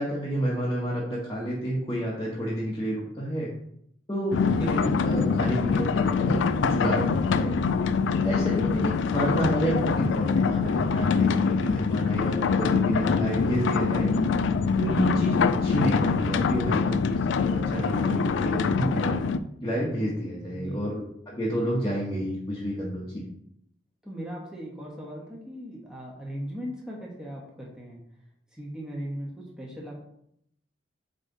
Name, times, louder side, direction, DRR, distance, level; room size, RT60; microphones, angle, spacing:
voice 1, 0.0-3.5 4.1-7.5 8.2-14.1 14.7-15.4 15.6-19.2 19.6-23.1, equal, 20° left, -7 dB, 1.3 m, -29 dB
sound 1, 4.3-19.4, left 5 dB, 85° left, 0.4 m, -24 dB
voice 2, 20.5-20.9 24.0-28.0 28.5-30.0, equal, 5° right, -4 dB, 1.3 m, -38 dB
8.1 x 3.3 x 4.0 m, 0.72 s
head